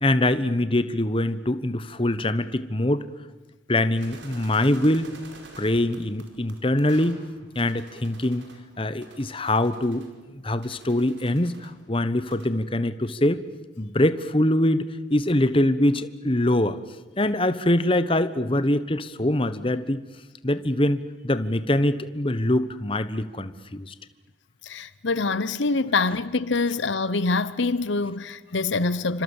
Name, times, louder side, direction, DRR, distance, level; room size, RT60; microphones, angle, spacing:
voice 1, 0.0-3.0 3.7-5.1 5.6-7.2 7.5-8.4 8.8-13.4 13.8-16.8 17.2-20.0 20.4-23.9, left 1 dB, 30° left, 1.1 m, -23 dB
sound 1, 4.0-8.6 9.0-11.8 12.1-12.6, right 2 dB, 75° right, 5.0 m, -49 dB
voice 2, 24.6-29.2, left 3 dB, 75° left, 0.9 m, -25 dB
28.5 x 26.0 x 7.3 m
head